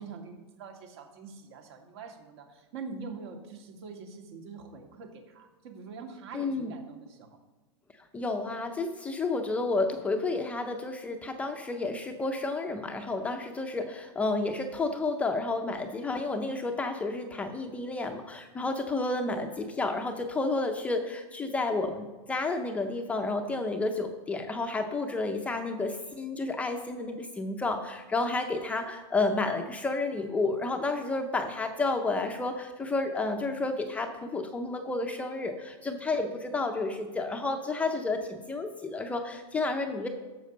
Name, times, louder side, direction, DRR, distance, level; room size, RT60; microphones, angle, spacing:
voice 1, 0.0-7.3, right 4 dB, 60° right, 3 dB, 2.3 m, -44 dB
voice 2, 6.3-6.7 8.1-40.1, left 3 dB, 10° left, 4 dB, 0.6 m, -31 dB
12.5 x 7.5 x 5.4 m, 1.3 s
supercardioid pair, 160°, 16 cm